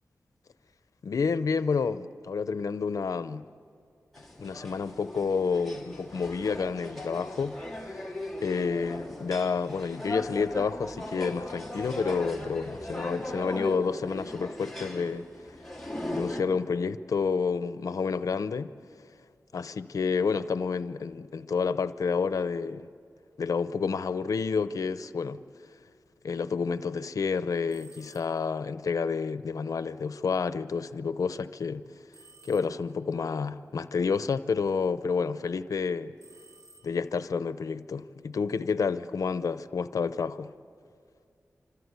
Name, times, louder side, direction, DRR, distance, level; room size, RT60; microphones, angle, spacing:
voice 1, 1.0-3.4 4.4-7.6 7.9-8.0 8.4-15.3 16.1-18.7 19.5-22.9 23.4-25.4 26.2-31.8 32.5-36.1 36.8-40.5, left 5 dB, 90° left, 0.7 m, -29 dB
sound 1, 4.1-16.4, left 1 dB, 5° left, 3.4 m, -38 dB
sound 2, 27.7-28.6 32.1-33.1 36.2-37.3, right 3 dB, 80° right, 2.9 m, -57 dB
26.5 x 26.0 x 8.2 m
wide cardioid pair, 105°, 6 cm